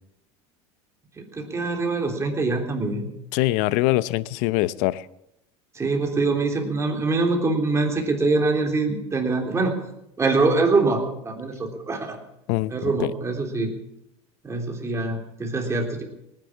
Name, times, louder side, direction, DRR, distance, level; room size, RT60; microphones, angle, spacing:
voice 1, 1.2-3.1 5.8-9.8 10.2-12.2 12.7-13.7 14.4-16.0, right 3 dB, 20° right, 2 dB, 3.5 m, -24 dB
voice 2, 3.3-5.1 12.5-12.7 13.0-13.1, left 18 dB, 65° left, 18 dB, 0.7 m, -23 dB
19.0 x 10.0 x 7.3 m, 0.84 s
supercardioid pair, 110°, 14 cm